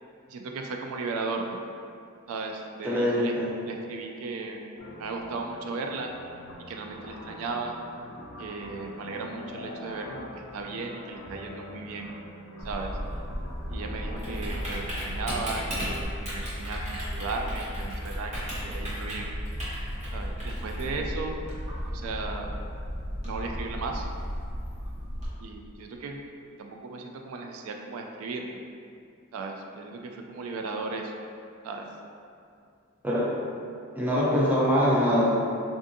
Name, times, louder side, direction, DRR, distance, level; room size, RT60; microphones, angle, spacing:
voice 1, 0.3-1.6 2.3-3.4 3.6-4.6 5.0-6.1 6.7-7.8 8.4-12.1 12.6-13.0 13.7-19.3 20.1-21.5 21.9-22.6 23.2-24.1 25.4-26.2 26.6-28.6 29.3-31.1 31.6-31.9, right 3 dB, 70° right, 2 dB, 0.3 m, -36 dB
voice 2, 2.8-3.5 33.0-33.3 34.0-35.3, equal, 10° right, -7 dB, 0.5 m, -23 dB
sound 1, 4.8-16.0, left 1 dB, 75° left, 0.5 m, -44 dB
Typing, 12.6-25.3, equal, 30° right, 0.9 m, -34 dB
3.6 x 2.5 x 2.6 m, 2.4 s
head